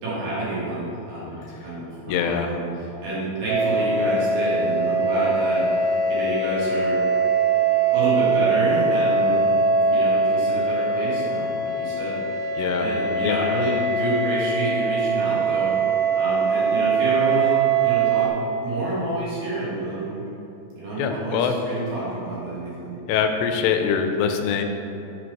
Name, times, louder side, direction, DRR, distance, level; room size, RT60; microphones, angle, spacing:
voice 1, 0.0-2.6 3.0-5.6 6.1-7.0 7.9-9.6 9.9-12.5 12.8-15.7 16.1-18.3 18.6-20.2 20.7-22.9, right 2 dB, 60° right, -8 dB, 2.9 m, -28 dB
voice 2, 2.1-2.5 12.6-12.9 13.2-13.4 21.0-21.6 23.1-24.6, left 7 dB, 85° left, 5 dB, 2.7 m, -23 dB
sound 1, 3.5-18.3, right 3 dB, 90° right, 2.0 m, -22 dB
6.6 x 4.5 x 5.2 m, 2.9 s
omnidirectional pair, 4.9 m